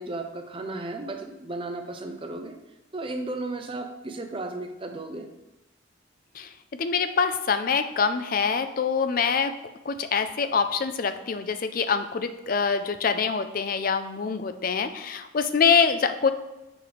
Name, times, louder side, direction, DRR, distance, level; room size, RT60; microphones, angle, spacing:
voice 1, 0.0-2.6 2.9-5.3, right 2 dB, 25° right, 5 dB, 0.6 m, -34 dB
voice 2, 6.8-9.5 9.9-16.3, left 5 dB, 45° left, 10 dB, 0.4 m, -25 dB
7.0 x 3.2 x 5.0 m, 1.0 s
head